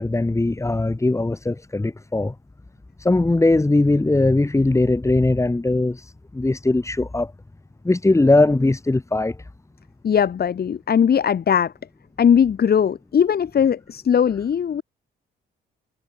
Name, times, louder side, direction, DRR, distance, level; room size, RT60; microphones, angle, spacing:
voice 1, 0.0-2.3 3.0-7.3 7.8-9.4, left 2 dB, 15° left, 3.0 m, -20 dB
voice 2, 10.0-11.7 12.2-14.8, left 8 dB, 50° left, 3.4 m, -19 dB
cardioid pair, 90°, 20 cm